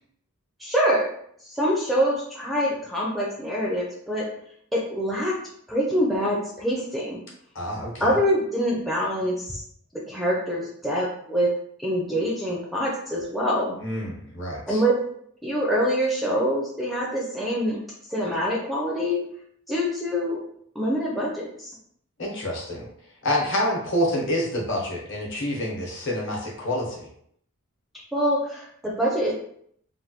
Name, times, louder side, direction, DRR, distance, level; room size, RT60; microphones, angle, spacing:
voice 1, 0.6-1.1 1.4-4.3 4.7-5.4 5.7-7.2 8.0-9.6 9.9-11.5 11.8-13.8 14.7-15.0 15.4-17.8 18.1-19.2 19.7-20.4 20.8-21.7 28.1-29.3, equal, ahead, -4 dB, 0.4 m, -25 dB
voice 2, 7.5-8.1 13.8-14.8 22.2-22.9 23.2-27.1, left 1 dB, 55° left, -2 dB, 0.9 m, -27 dB
3.2 x 2.2 x 2.8 m, 0.67 s
head